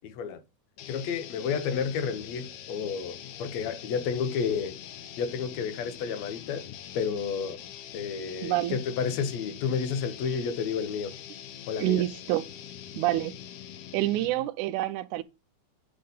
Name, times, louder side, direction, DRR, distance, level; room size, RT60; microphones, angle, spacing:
voice 1, 0.0-0.4 0.9-4.8 5.2-6.7 6.9-7.6 7.9-11.2 11.7-12.0, left 6 dB, 70° left, 2.1 m, -31 dB
sound 1, 0.8-14.5, left 10 dB, 85° left, 2.3 m, -44 dB
voice 2, 8.4-8.8 11.8-12.5 13.0-13.4 13.9-15.2, right 15 dB, 80° right, 2.0 m, -27 dB
8.5 x 3.8 x 5.3 m
omnidirectional pair, 3.5 m